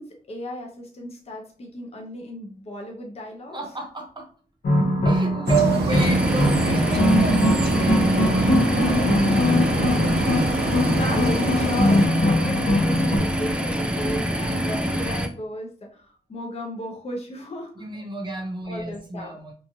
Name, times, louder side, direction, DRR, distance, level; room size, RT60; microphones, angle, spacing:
voice 1, 0.0-3.6 10.3-17.7 18.7-19.4, left 1 dB, 40° left, 1 dB, 0.6 m, -35 dB
voice 2, 3.5-4.3 5.0-9.9 17.7-19.5, right 5 dB, 25° right, 2 dB, 0.8 m, -31 dB
sound 1, 4.6-13.2, left 1 dB, 65° left, 0.8 m, -22 dB
sound 2, 5.5-12.1, right 3 dB, 85° right, 0.7 m, -26 dB
sound 3, 5.9-15.3, equal, 5° right, 0.3 m, -26 dB
3.0 x 2.3 x 2.6 m, 0.42 s
wide cardioid pair, 125°, 17 cm